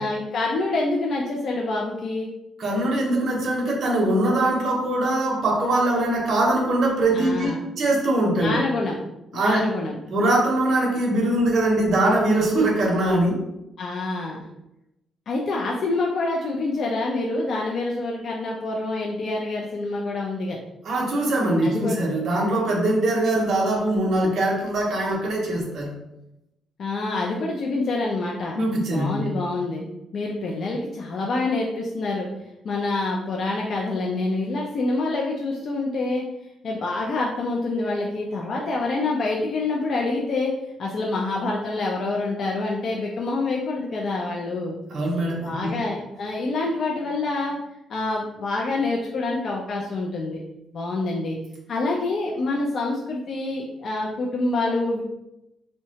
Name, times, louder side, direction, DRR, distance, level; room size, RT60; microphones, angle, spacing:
voice 1, 0.0-2.3 7.1-7.6 8.3-9.0 9.3-10.0 13.8-14.4 15.3-20.6 21.6-22.0 26.8-28.6 28.9-29.9 30.1-32.3 32.6-36.2 36.6-40.5 40.8-44.8 45.4-47.6 47.9-50.4 50.7-51.4 51.7-55.0, left 2 dB, 50° left, -1 dB, 0.3 m, -26 dB
voice 2, 2.6-7.5 7.8-8.6 9.3-9.7 10.1-13.4 20.8-25.9 28.5-29.4 44.9-45.8, right 1 dB, 55° right, -2 dB, 0.6 m, -22 dB
2.7 x 2.1 x 2.7 m, 0.89 s
cardioid pair, 130°, 0 cm